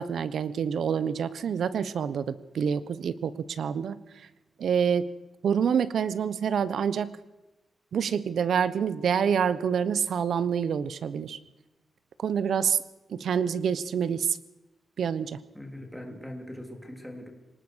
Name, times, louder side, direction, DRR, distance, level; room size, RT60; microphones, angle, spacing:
voice 1, 0.0-4.0 4.6-5.1 5.4-7.1 7.9-11.4 12.2-12.8 13.1-14.4 15.0-15.4, right 7 dB, 75° right, 15 dB, 1.1 m, -27 dB
voice 2, 15.5-17.3, left 1 dB, ahead, 3 dB, 3.8 m, -41 dB
23.5 x 19.5 x 6.4 m, 0.99 s
wide cardioid pair, 130°, 0 cm